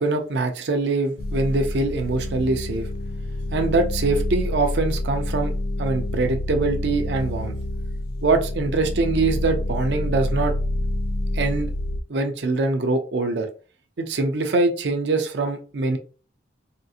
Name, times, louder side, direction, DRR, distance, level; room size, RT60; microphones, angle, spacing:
voice 1, 0.0-2.9 3.5-5.5 5.8-7.5 8.2-10.5 11.3-11.7 12.1-13.5 14.0-16.0, right 3 dB, 65° right, 5 dB, 0.5 m, -23 dB
sound 1, 1.2-12.0, left 1 dB, 55° left, 0.4 m, -27 dB
3.6 x 2.4 x 2.7 m, 0.37 s
head